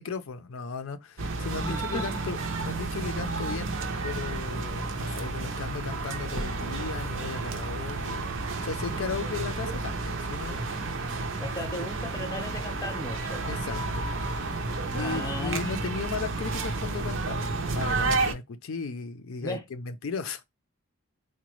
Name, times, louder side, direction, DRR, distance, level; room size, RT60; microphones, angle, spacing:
voice 1, 0.0-2.4 2.6-3.7 4.0-8.2 8.6-10.7 13.5-14.0 14.9-17.5 17.8-20.4, left 5 dB, 70° left, 0.5 m, -36 dB
sound 1, 1.2-18.3, right 3 dB, 60° right, 0.6 m, -31 dB
voice 2, 1.6-2.3 11.4-13.5 14.9-15.7 19.4-19.6, left 1 dB, 15° left, 0.7 m, -36 dB
3.9 x 2.1 x 3.0 m
head